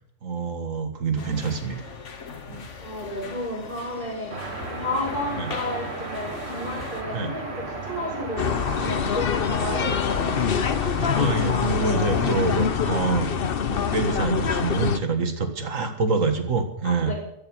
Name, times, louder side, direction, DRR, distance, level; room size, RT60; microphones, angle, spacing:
voice 1, 0.2-1.8 2.5-2.7 5.4-5.5 7.1-7.3 11.2-13.3 13.7-17.1, right 4 dB, 80° right, 6 dB, 2.1 m, -26 dB
sound 1, 1.2-7.0, left 5 dB, 65° left, 1.8 m, -40 dB
voice 2, 2.8-4.4 4.7-10.4 11.8-12.0 16.8-17.1, left 1 dB, 30° left, -4 dB, 6.0 m, -32 dB
sound 2, 4.3-12.6, right 3 dB, 55° right, 2.2 m, -35 dB
sound 3, 8.4-15.0, left 7 dB, 50° left, 1.0 m, -24 dB
14.5 x 12.0 x 6.2 m, 0.77 s
omnidirectional pair, 1.3 m